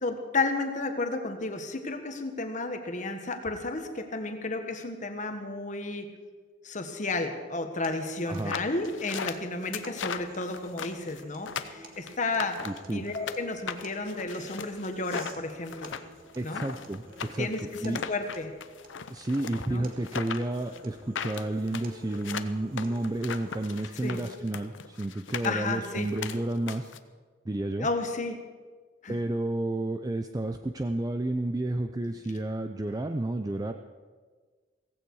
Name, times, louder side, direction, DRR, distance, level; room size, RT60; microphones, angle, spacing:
voice 1, 0.0-6.1 6.6-12.6 12.9-15.9 16.4-16.6 17.4-18.5 19.7-19.9 24.0-24.2 25.4-26.1 27.8-28.4 29.0-29.2, left 3 dB, 40° left, 6 dB, 1.5 m, -32 dB
sound 1, 7.8-23.9, right 2 dB, 50° right, 1.8 m, -51 dB
sound 2, 8.3-13.4 13.7-27.0, left 6 dB, 80° left, 0.7 m, -38 dB
voice 2, 8.3-8.6 12.6-13.1 16.4-17.5 17.8-18.1 19.1-26.9 27.5-27.9 29.1-33.7, right 1 dB, 20° right, 7 dB, 0.5 m, -31 dB
16.5 x 15.5 x 4.8 m, 1.5 s
head